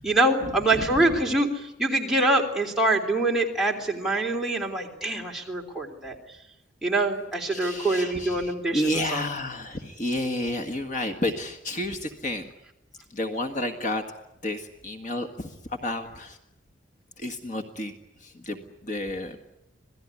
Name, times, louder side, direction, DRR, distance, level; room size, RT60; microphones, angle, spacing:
voice 1, 0.0-6.1 6.8-8.8 9.1-9.3, right 2 dB, ahead, -1 dB, 3.3 m, -24 dB
voice 2, 0.7-1.0 7.5-12.5 13.1-14.0 14.4-16.4 17.2-17.9 18.2-19.5, left 1 dB, 40° left, 5 dB, 1.7 m, -31 dB
26.5 x 18.5 x 9.8 m, 0.88 s
head